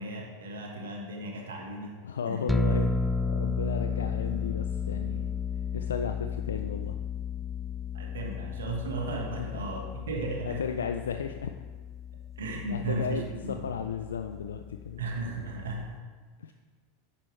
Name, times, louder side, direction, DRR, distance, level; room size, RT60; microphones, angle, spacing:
voice 1, 0.0-1.9 2.3-2.5 7.9-10.6 12.4-13.9 15.0-15.8, right 2 dB, 85° right, 0 dB, 1.4 m, -35 dB
voice 2, 2.0-2.9 3.2-5.3 5.7-7.0 9.4-9.7 10.5-11.5 12.5-15.0 16.4-16.5, left 6 dB, 90° left, 6 dB, 0.3 m, -34 dB
sound 1, 2.5-15.9, left 4 dB, 5° left, 0.3 m, -33 dB
8.4 x 6.2 x 3.2 m, 1.5 s
hypercardioid pair, 100°, 0 cm